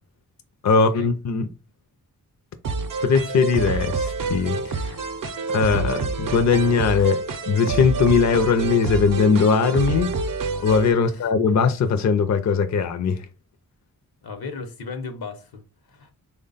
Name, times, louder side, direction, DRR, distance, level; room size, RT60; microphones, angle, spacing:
voice 1, 0.6-1.5 3.0-5.0 5.5-10.1 10.6-13.3, left 5 dB, 50° left, 0.5 m, -20 dB
sound 1, 2.6-10.9, right 4 dB, 60° right, 0.6 m, -27 dB
voice 2, 10.9-11.3 14.2-15.6 15.9-16.1, left 4 dB, 80° left, 0.8 m, -36 dB
3.3 x 2.2 x 3.9 m
cardioid pair, 50°, 36 cm